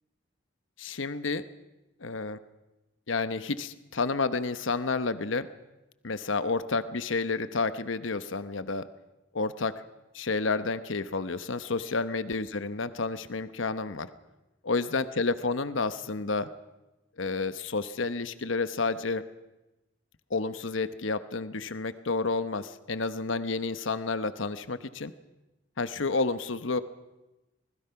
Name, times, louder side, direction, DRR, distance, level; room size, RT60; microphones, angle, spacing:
voice 1, 0.8-1.5 2.0-2.4 3.1-5.5 6.0-8.9 9.3-9.8 10.1-14.1 14.6-16.5 17.2-19.3 20.3-25.1 25.8-26.8, left 3 dB, 85° left, 12 dB, 1.0 m, -30 dB
26.5 x 20.0 x 5.8 m, 1.0 s
head